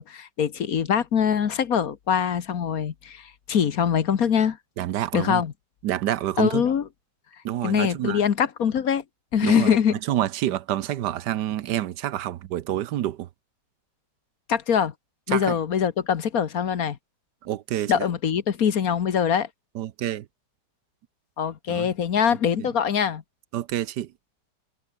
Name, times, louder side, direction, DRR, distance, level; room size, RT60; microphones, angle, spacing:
voice 1, 0.0-4.6 5.1-5.5 6.4-6.9 7.6-9.0 9.3-10.0 14.5-14.9 15.3-17.0 17.9-19.5 21.4-23.2, left 8 dB, 60° left, 1.6 m, -23 dB
voice 2, 4.8-5.4 5.8-6.6 7.4-8.2 9.4-9.7 10.1-13.3 15.3-15.6 17.4-17.9 19.7-20.2 21.7-21.9 22.6-22.7 23.5-24.1, right 12 dB, 80° right, 1.4 m, -27 dB
omnidirectional pair, 1.8 m